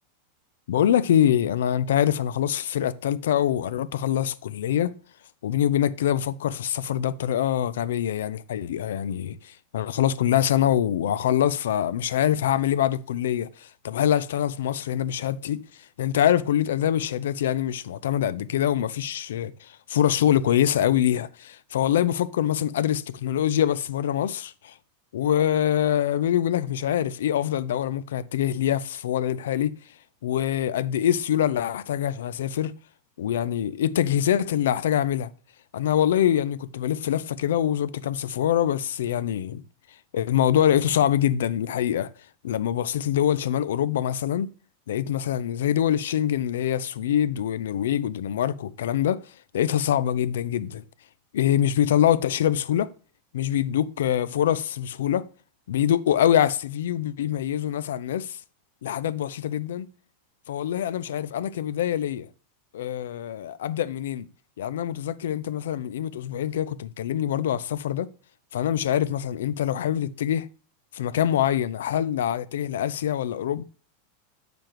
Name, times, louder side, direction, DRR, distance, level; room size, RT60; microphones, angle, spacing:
voice 1, 0.7-5.0 5.4-24.7 25.1-29.7 30.2-32.7 33.2-35.3 35.7-39.6 40.1-42.1 42.4-44.5 44.9-50.8 51.3-52.9 53.3-55.3 55.7-58.4 58.8-59.9 60.5-62.3 62.7-64.3 64.6-68.1 68.5-70.5 70.9-73.6, left 10 dB, 85° left, 0.5 m, -24 dB
7.6 x 6.9 x 2.9 m
supercardioid pair, 165°, 0 cm